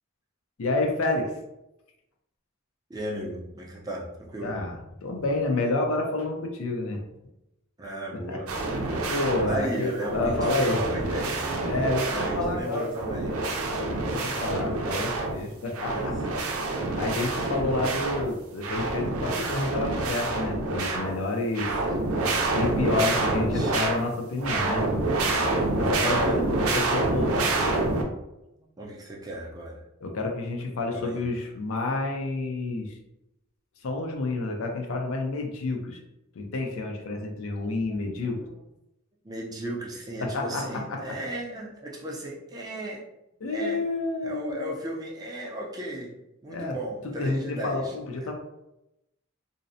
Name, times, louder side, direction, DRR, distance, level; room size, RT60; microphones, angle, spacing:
voice 1, 0.6-1.4 4.4-7.0 8.3-8.4 9.1-10.8 11.6-12.9 13.3-16.1 17.0-21.8 22.5-24.9 25.7-27.8 30.0-33.0 33.8-36.0 36.4-38.4 40.2-40.6 40.9-41.2 43.4-44.7 46.5-46.7 47.2-48.3, left 2 dB, 70° left, 2 dB, 0.5 m, -29 dB
voice 2, 2.9-4.6 7.8-8.5 9.5-11.7 12.1-13.4 15.8-16.1 22.9-23.7 26.0-26.5 28.6-29.8 30.9-31.2 37.6-38.6 39.2-43.0 43.5-43.8 44.2-46.1 46.4-47.9, right 1 dB, 20° right, -3 dB, 0.4 m, -36 dB
sound 1, 8.5-9.7 10.0-12.6 13.0-15.4 15.7-18.3 18.6-21.2 21.5-24.0 24.4-28.0, right 2 dB, 80° right, 0.4 m, -27 dB
2.6 x 2.0 x 2.6 m, 0.90 s
head